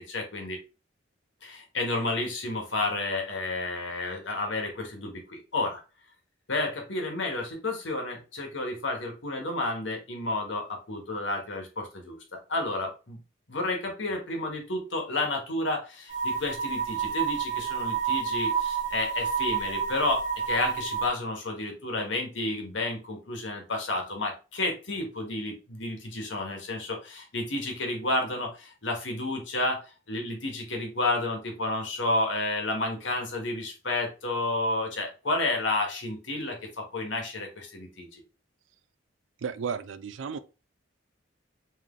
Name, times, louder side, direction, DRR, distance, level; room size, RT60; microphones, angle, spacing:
voice 1, 0.1-0.6 1.4-5.8 6.5-13.2 13.5-29.8 30.1-38.2, left 2 dB, 70° left, 1.4 m, -31 dB
sound 1, 16.1-21.1, right 6 dB, 40° right, 1.0 m, -29 dB
voice 2, 39.4-40.4, right 6 dB, 80° right, 0.4 m, -33 dB
3.6 x 3.1 x 3.7 m
head